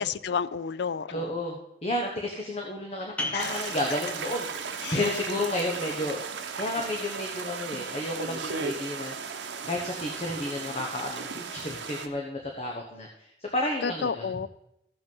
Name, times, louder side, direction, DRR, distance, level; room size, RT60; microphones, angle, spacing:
voice 1, 0.0-1.3 3.3-3.5 4.8-5.0 13.8-14.5, left 6 dB, 65° left, 17 dB, 0.4 m, -30 dB
voice 2, 1.1-6.2 6.6-9.2 9.6-14.3, left 1 dB, 35° left, 1 dB, 1.0 m, -32 dB
sound 1, 3.2-8.5, left 1 dB, 5° left, 1.6 m, -42 dB
sound 2, 3.4-12.1, right 5 dB, 80° right, 0.9 m, -36 dB
14.5 x 5.3 x 5.4 m, 0.84 s
head